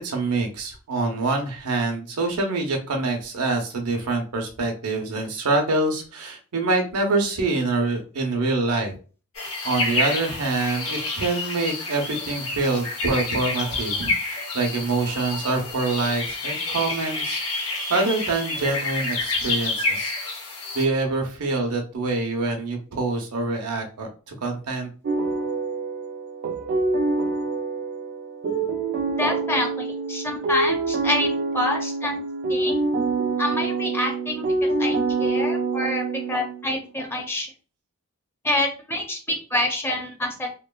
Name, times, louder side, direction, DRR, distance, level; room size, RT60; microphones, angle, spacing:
voice 1, 0.0-8.9 9.6-20.1 20.7-24.1 24.4-24.9, right 3 dB, 80° right, 3 dB, 0.7 m, -25 dB
sound 1, 9.3-20.8, left 3 dB, 70° left, 1.0 m, -28 dB
sound 2, 25.0-36.8, right 3 dB, 50° right, 0.3 m, -26 dB
voice 2, 29.2-32.2 32.5-32.7 33.4-37.5 38.4-40.5, left 1 dB, 10° left, 2 dB, 0.5 m, -27 dB
3.0 x 2.2 x 2.2 m, 0.37 s
head